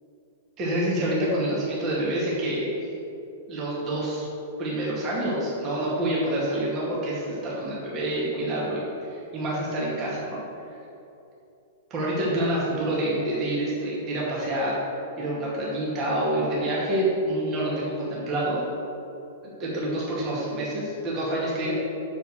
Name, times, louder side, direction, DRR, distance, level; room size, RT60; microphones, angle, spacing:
voice 1, 0.6-2.8 3.5-4.3 4.6-10.4 11.9-14.8 15.2-18.6 19.4-21.7, right 1 dB, 30° right, -6 dB, 2.1 m, -27 dB
6.9 x 5.8 x 6.5 m, 2.8 s
figure-of-eight pair, 100°, 0 cm